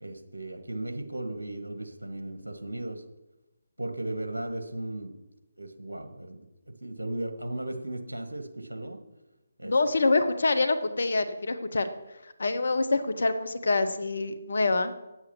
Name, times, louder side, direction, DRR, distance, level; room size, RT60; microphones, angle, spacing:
voice 1, 0.0-3.0 3.8-5.1 5.6-6.5 6.8-9.0 9.6-9.7, right 1 dB, 80° right, 5 dB, 1.5 m, -36 dB
voice 2, 9.6-11.9 12.4-14.9, left 3 dB, 60° left, 9 dB, 0.9 m, -26 dB
8.9 x 8.1 x 6.0 m, 1.0 s
figure-of-eight pair, 145°, 0 cm